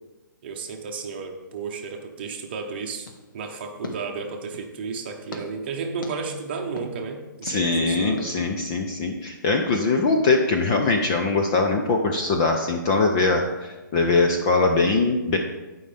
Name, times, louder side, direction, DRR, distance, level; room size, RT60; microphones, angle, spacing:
voice 1, 0.4-3.1 3.3-8.3, right 5 dB, 30° right, 3 dB, 1.0 m, -33 dB
sound 1, 3.0-4.8 5.3-5.4 6.0-6.1 6.8-6.9 7.5-7.6 8.2-8.3, left 2 dB, 75° left, 1.7 m, -39 dB
voice 2, 7.4-15.4, left 3 dB, 15° left, 2 dB, 0.3 m, -22 dB
16.0 x 5.4 x 3.4 m, 1.1 s
hypercardioid pair, 175°, 11 cm